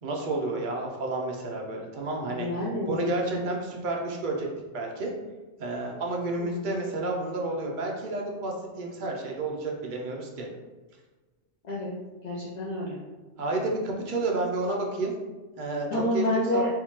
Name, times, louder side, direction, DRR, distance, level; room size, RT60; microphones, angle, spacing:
voice 1, 0.0-2.5 2.9-4.5 4.7-5.1 5.6-10.5 13.4-15.1 15.6-16.6, right 2 dB, 55° right, 0 dB, 0.6 m, -30 dB
voice 2, 2.3-3.0 6.4-6.6 11.6-11.9 12.2-13.0 15.9-16.7, left 1 dB, 50° left, -6 dB, 0.5 m, -28 dB
3.5 x 2.7 x 3.1 m, 1.2 s
omnidirectional pair, 1.4 m